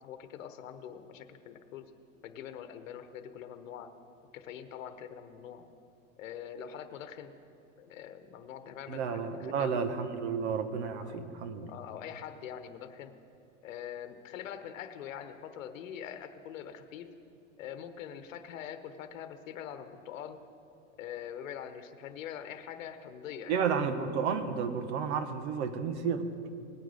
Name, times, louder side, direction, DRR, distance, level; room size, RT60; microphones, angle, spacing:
voice 1, 0.0-1.9 2.2-3.9 4.3-5.7 6.2-7.3 7.8-9.9 11.0-11.2 11.7-13.1 13.6-17.1 17.6-20.4 21.0-23.6, left 9 dB, 80° left, 9 dB, 1.0 m, -44 dB
voice 2, 8.9-11.7 23.5-26.3, right 6 dB, 60° right, 9 dB, 1.2 m, -32 dB
19.0 x 9.2 x 3.5 m, 2.6 s
supercardioid pair, 150°, 39 cm